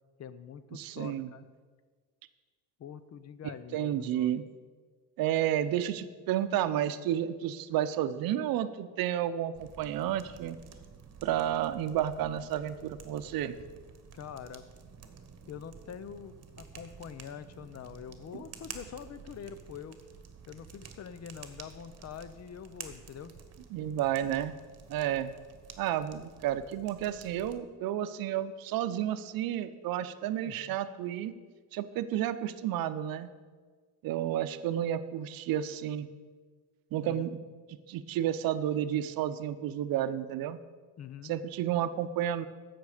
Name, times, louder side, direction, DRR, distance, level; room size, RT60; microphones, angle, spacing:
voice 1, 0.2-1.5 2.8-4.4 14.1-14.6 15.5-20.0 20.5-23.4 30.5-30.8 37.0-37.2 41.0-41.4, left 8 dB, 50° left, 13 dB, 0.6 m, -45 dB
voice 2, 0.7-1.3 3.7-4.4 5.2-10.6 11.2-13.6 18.3-18.4 23.7-24.5 24.9-25.3 25.8-31.3 31.7-33.3 34.0-36.1 36.9-37.3 37.7-40.6 41.2-42.5, right 11 dB, 90° right, 12 dB, 0.6 m, -31 dB
sound 1, 9.5-27.6, right 6 dB, 45° right, 1.2 m, -51 dB
14.5 x 6.0 x 4.9 m, 1.5 s
cardioid pair, 110°, 34 cm